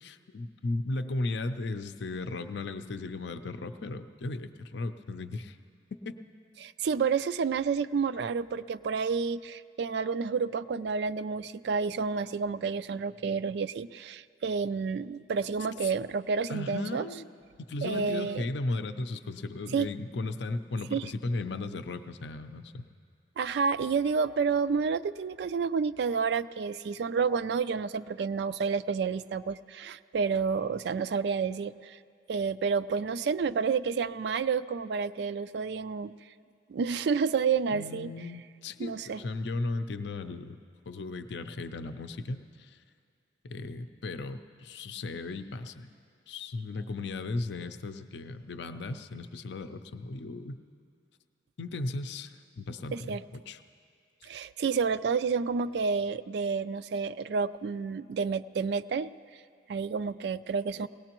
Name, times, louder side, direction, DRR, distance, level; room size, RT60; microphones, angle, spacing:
voice 1, 0.0-5.6 6.1-6.2 16.5-17.3 17.7-22.8 37.7-40.6 40.9-42.8 43.5-45.9 46.3-50.6 51.6-53.6, left 2 dB, 70° left, 9 dB, 0.5 m, -36 dB
voice 2, 6.6-17.1 17.8-18.5 19.7-19.9 20.9-21.1 23.4-32.0 32.3-36.1 36.7-38.1 38.8-39.2 52.9-53.2 54.2-59.1 59.7-60.9, right 5 dB, 60° right, 14 dB, 0.3 m, -30 dB
20.5 x 18.0 x 3.0 m, 2.3 s
head